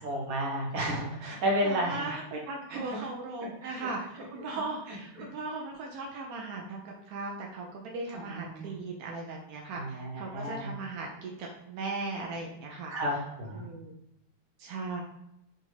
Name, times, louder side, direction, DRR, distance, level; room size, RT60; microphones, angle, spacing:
voice 1, 0.0-2.0 2.7-2.8 3.6-3.9 8.1-8.7 9.7-10.7 12.9-13.7, equal, 50° right, -2 dB, 1.3 m, -32 dB
voice 2, 1.6-9.8 10.2-12.9 13.5-13.9 14.6-15.0, right 3 dB, 75° right, 0 dB, 0.8 m, -38 dB
5.2 x 2.5 x 3.2 m, 0.80 s
omnidirectional pair, 2.2 m